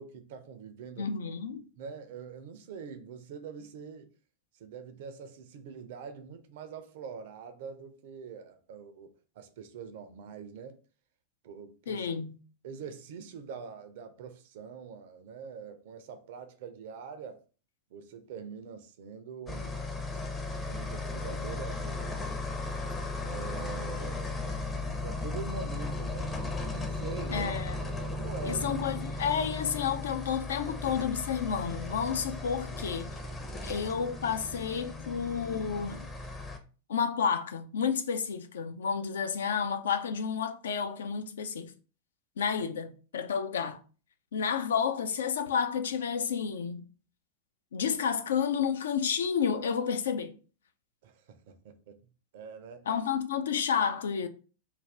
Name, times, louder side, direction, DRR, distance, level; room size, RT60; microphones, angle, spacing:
voice 1, 0.0-1.1 1.8-4.1 4.5-10.8 11.4-12.1 12.6-17.4 17.9-19.7 20.6-22.8 23.2-24.3 25.0-26.3 26.7-27.5 27.9-28.8 51.0-52.0 52.3-52.9, right 6 dB, 55° right, 0.4 m, -44 dB
voice 2, 1.0-1.7 11.9-12.4 27.3-27.8 28.4-33.1 33.6-36.1 36.9-41.7 42.4-43.8 44.3-46.9 47.7-50.3 52.9-54.3, left 7 dB, 65° left, 0.3 m, -31 dB
sound 1, 19.5-36.6, left 3 dB, 15° left, 0.5 m, -36 dB
2.5 x 2.2 x 3.3 m
figure-of-eight pair, 90°, 0 cm